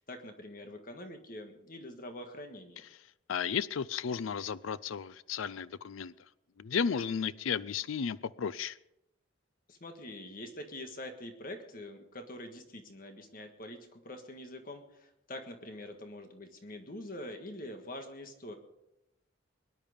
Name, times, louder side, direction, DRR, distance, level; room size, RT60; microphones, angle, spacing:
voice 1, 0.0-2.8 9.7-18.6, left 1 dB, 45° left, 5 dB, 1.6 m, -45 dB
voice 2, 3.3-6.1 6.6-8.8, left 6 dB, 80° left, 17 dB, 0.5 m, -34 dB
22.5 x 10.5 x 5.1 m, 0.88 s
head